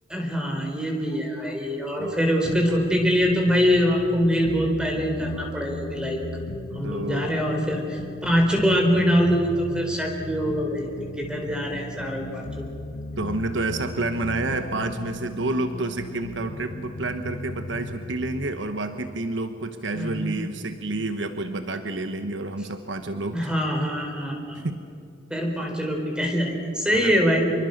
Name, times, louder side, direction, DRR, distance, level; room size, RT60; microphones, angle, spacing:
voice 1, 0.1-6.2 6.7-10.9 11.2-12.6 19.9-20.4 23.3-24.6 25.3-27.5, equal, 5° right, 1 dB, 4.0 m, -24 dB
sound 1, 2.4-18.5, left 1 dB, 85° left, 1.4 m, -37 dB
voice 2, 6.8-7.4 13.2-23.5 24.5-24.8 26.9-27.2, right 2 dB, 80° right, 8 dB, 1.2 m, -29 dB
27.0 x 23.5 x 6.6 m, 2.7 s
head